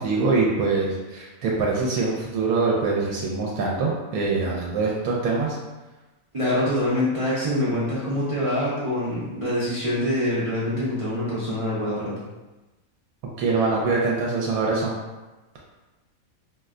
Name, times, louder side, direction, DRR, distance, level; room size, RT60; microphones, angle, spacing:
voice 1, 0.0-5.6 13.4-14.9, right 3 dB, 80° right, -3 dB, 1.0 m, -24 dB
voice 2, 6.3-12.1, left 1 dB, 50° right, -9 dB, 0.4 m, -25 dB
2.6 x 2.1 x 3.5 m, 1.1 s
omnidirectional pair, 1.5 m